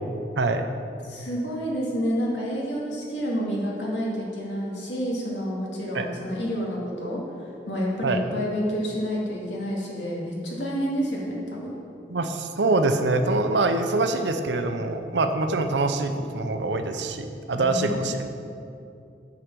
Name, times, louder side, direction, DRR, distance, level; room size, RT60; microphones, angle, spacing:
voice 1, 0.4-0.7 5.9-6.1 8.0-8.2 12.1-18.3, right 2 dB, 80° right, 7 dB, 0.7 m, -24 dB
voice 2, 1.0-11.8 17.5-18.0, equal, 90° left, -4 dB, 2.4 m, -29 dB
9.9 x 4.9 x 7.6 m, 2.6 s
head